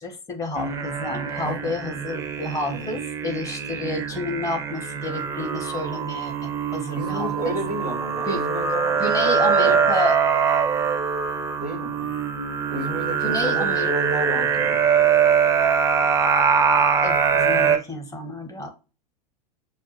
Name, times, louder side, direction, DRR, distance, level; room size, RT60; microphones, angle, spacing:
voice 1, 0.0-7.6 8.2-8.4 9.0-10.2 13.2-13.9 17.0-18.7, left 1 dB, 15° left, 0.9 m, -30 dB
sound 1, 0.6-17.8, right 6 dB, 15° right, 0.5 m, -23 dB
voice 2, 6.9-9.9 11.6-12.1 12.7-14.8, right 1 dB, 85° left, 1.6 m, -32 dB
6.4 x 2.3 x 2.8 m
figure-of-eight pair, 90°, 20 cm